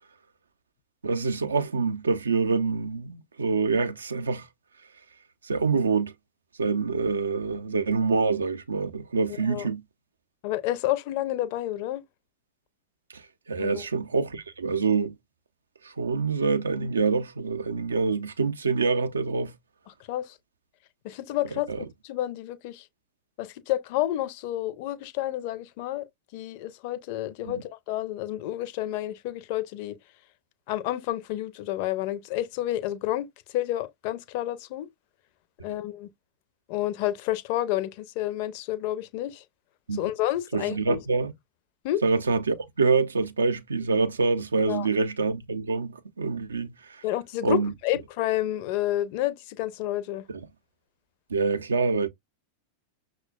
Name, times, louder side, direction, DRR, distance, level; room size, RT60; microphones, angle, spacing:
voice 1, 1.0-4.5 5.4-6.1 6.6-9.8 13.1-13.2 13.5-15.1 15.8-19.5 21.7-21.8 27.5-27.6 39.9-40.0 40.5-41.3 42.0-47.0 47.4-47.7 50.3-50.4 51.3-52.1, right 4 dB, 75° right, 0.5 m, -26 dB
voice 2, 9.3-9.7 10.4-12.0 13.6-13.8 19.9-20.4 21.0-22.9 23.4-30.0 30.7-34.9 35.6-36.1 36.7-39.4 39.9-41.0 41.8-42.0 44.7-44.9 47.0-50.2, left 14 dB, 45° left, 0.4 m, -30 dB
5.9 x 2.1 x 2.2 m
figure-of-eight pair, 90°, 0 cm